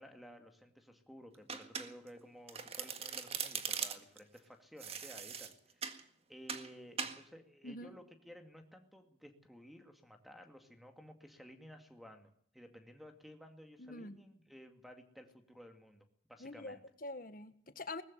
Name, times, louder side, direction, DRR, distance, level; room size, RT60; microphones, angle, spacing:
voice 1, 0.0-16.8, equal, ahead, 6 dB, 2.2 m, -55 dB
Domestic sounds home sounds, 1.5-2.2 2.5-4.2 4.8-6.0 6.5-6.7 7.0-7.2, right 6 dB, 35° right, 1.8 m, -40 dB
voice 2, 13.8-14.2 16.4-18.0, left 2 dB, 50° left, 11 dB, 1.6 m, -45 dB
20.0 x 14.5 x 9.4 m, 0.64 s
head